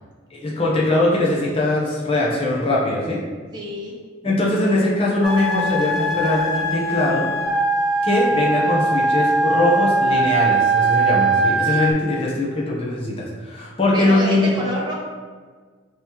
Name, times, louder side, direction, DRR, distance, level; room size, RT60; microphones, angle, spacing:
voice 1, 0.3-3.2 4.2-7.3 8.0-14.5, left 1 dB, 30° left, -4 dB, 0.8 m, -21 dB
voice 2, 3.5-3.9 13.9-14.9, equal, 20° right, -4 dB, 0.9 m, -28 dB
sound 1, 5.2-11.9, right 2 dB, ahead, 0.5 m, -20 dB
5.2 x 3.0 x 3.0 m, 1.5 s
head